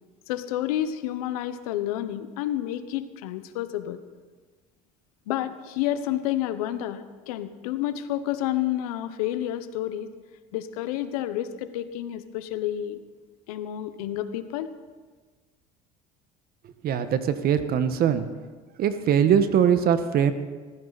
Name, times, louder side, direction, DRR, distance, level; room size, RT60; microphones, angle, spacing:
voice 1, 0.3-4.0 5.3-10.1 10.5-13.0 13.5-14.7, left 12 dB, 85° left, 12 dB, 1.1 m, -30 dB
voice 2, 16.6-18.3 18.8-20.3, right 8 dB, 55° right, 10 dB, 1.4 m, -22 dB
19.5 x 15.0 x 4.2 m, 1.4 s
supercardioid pair, 80°, 18 cm